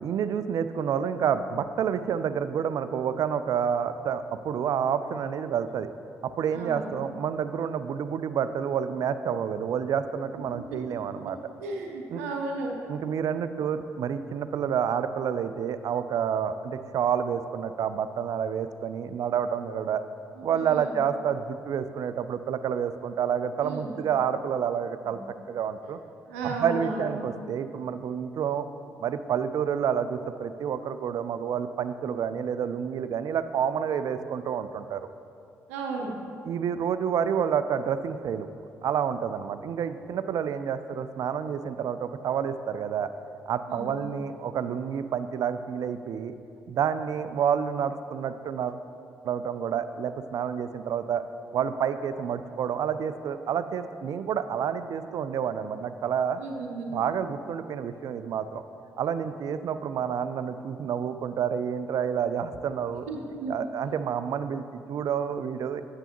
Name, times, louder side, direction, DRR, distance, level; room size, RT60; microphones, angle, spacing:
voice 1, 0.0-5.9 6.2-11.4 12.1-12.2 12.9-20.0 20.4-25.2 25.5-26.0 26.4-28.7 29.0-35.1 36.4-38.5 38.8-43.1 43.5-46.3 46.7-48.8 49.2-51.2 51.5-56.4 56.9-58.6 59.0-63.1 63.5-65.8, right 8 dB, 55° right, 11 dB, 0.3 m, -29 dB
voice 2, 6.5-6.9 10.5-10.6 11.6-12.7 20.4-20.9 23.6-23.9 25.0-25.2 26.3-27.1 35.7-36.1 43.7-43.9 56.4-56.9 63.1-63.6, right 3 dB, 85° right, 0 dB, 0.7 m, -34 dB
8.9 x 6.7 x 3.0 m, 2.5 s
hypercardioid pair, 45°, 7 cm